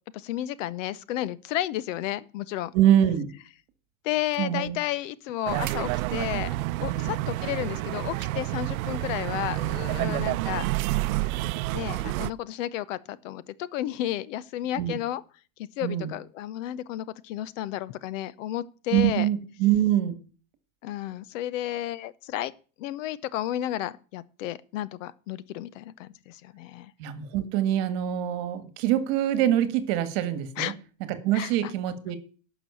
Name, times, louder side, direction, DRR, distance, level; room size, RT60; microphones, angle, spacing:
voice 1, 0.1-2.7 4.0-6.5 6.8-10.7 11.0-11.2 11.7-15.2 15.8-19.3 20.8-22.5 22.8-26.9 30.6-30.7 31.3-31.5, left 13 dB, 65° left, 0.8 m, -32 dB
voice 2, 2.7-3.3 4.4-4.8 6.9-7.2 10.0-10.2 14.7-15.0 15.8-16.1 18.9-20.2 27.0-30.7 31.1-32.2, right 11 dB, 50° right, 1.7 m, -24 dB
sound 1, 5.5-12.3, right 19 dB, 85° right, 0.6 m, -29 dB
11.5 x 6.1 x 8.3 m
supercardioid pair, 180°, 41 cm